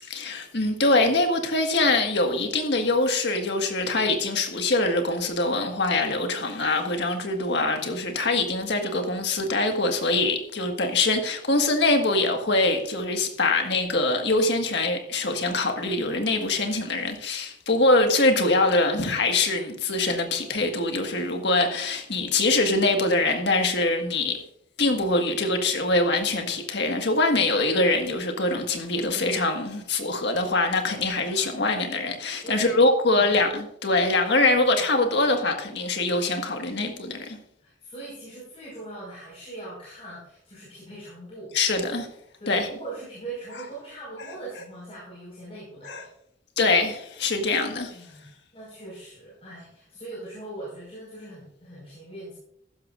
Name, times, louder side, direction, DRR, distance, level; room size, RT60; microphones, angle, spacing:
voice 1, 0.1-24.4 24.8-37.4 41.5-42.1 42.5-42.7 45.9-46.0 46.6-48.0, left 2 dB, 65° left, 1.7 m, -23 dB
voice 2, 28.9-29.6 32.4-32.8 33.1-33.6 37.6-41.5 42.4-46.1 47.9-52.3, right 2 dB, 35° left, 5.2 m, -41 dB
14.5 x 12.5 x 2.5 m
head